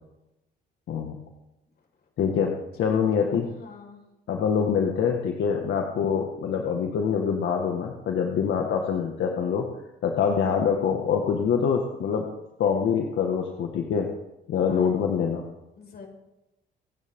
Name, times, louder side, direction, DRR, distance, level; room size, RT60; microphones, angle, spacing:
voice 1, 2.2-3.5 4.3-9.7 10.0-12.3 12.6-14.1 14.5-15.5, left 7 dB, 75° left, 2 dB, 1.9 m, -25 dB
voice 2, 2.8-4.1 8.4-8.7 14.6-15.0 15.8-16.1, left 4 dB, 50° left, 1 dB, 5.0 m, -47 dB
26.5 x 9.8 x 3.8 m, 0.93 s
cardioid pair, 90°, 20 cm